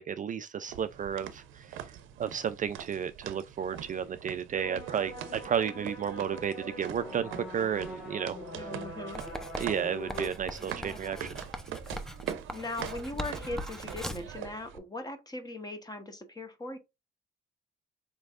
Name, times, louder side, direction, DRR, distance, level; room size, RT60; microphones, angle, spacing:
voice 1, 0.0-8.7 9.6-11.4, right 8 dB, 40° right, 0.4 m, -33 dB
sound 1, 0.7-14.8, right 10 dB, 85° right, 0.6 m, -43 dB
sound 2, 4.5-10.3, equal, 90° left, 2.5 m, -42 dB
voice 2, 8.5-9.2 10.6-11.2 12.5-16.8, left 2 dB, 20° left, 1.1 m, -40 dB
Writing, 9.1-14.4, equal, ahead, 0.6 m, -41 dB
4.3 x 3.2 x 2.4 m
cardioid pair, 90°, 20 cm